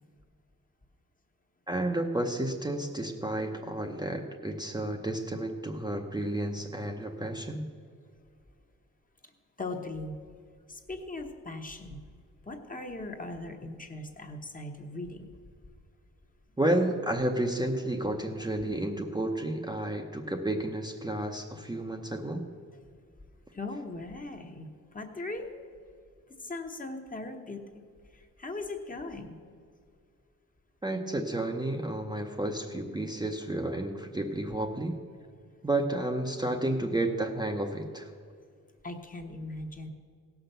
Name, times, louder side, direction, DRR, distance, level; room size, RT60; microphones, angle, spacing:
voice 1, 1.7-7.7 16.6-22.5 30.8-35.0 35.6-38.1, right 1 dB, 15° right, 2 dB, 0.7 m, -31 dB
voice 2, 9.6-10.2 10.7-12.0 12.5-15.3 23.5-25.5 26.4-27.6 28.1-29.4 38.8-39.9, left 2 dB, 25° left, 4 dB, 1.0 m, -39 dB
17.0 x 5.9 x 6.7 m, 2.2 s
wide cardioid pair, 125°, 32 cm